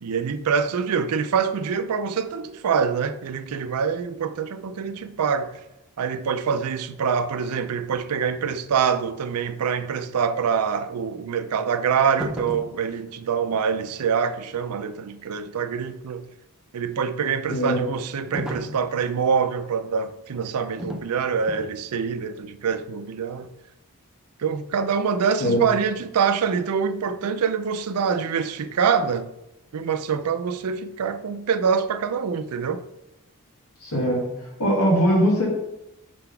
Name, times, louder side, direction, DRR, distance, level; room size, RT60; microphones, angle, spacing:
voice 1, 0.0-5.5 6.0-16.2 16.7-23.5 24.4-29.3 29.7-32.8, right 6 dB, 90° right, 0.5 m, -25 dB
sound 1, 12.2-12.8 18.3-18.9 20.8-21.1 21.5-21.7, left 1 dB, 5° right, 0.6 m, -33 dB
voice 2, 17.5-17.8 25.4-25.6 33.8-34.2 34.6-35.5, equal, 85° left, 1.8 m, -20 dB
5.8 x 3.9 x 5.6 m
head